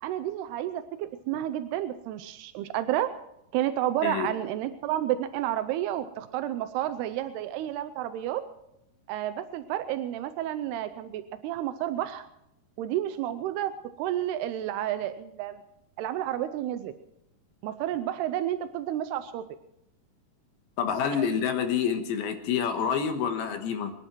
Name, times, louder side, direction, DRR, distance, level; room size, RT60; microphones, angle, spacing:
voice 1, 0.0-3.1 3.5-8.4 9.1-12.3 12.8-15.6 16.0-16.9 17.6-19.4 21.1-21.3, right 12 dB, 90° right, 10 dB, 2.8 m, -31 dB
voice 2, 20.8-23.9, left 7 dB, 75° left, 6 dB, 3.1 m, -27 dB
24.0 x 10.5 x 4.5 m, 0.82 s
omnidirectional pair, 4.5 m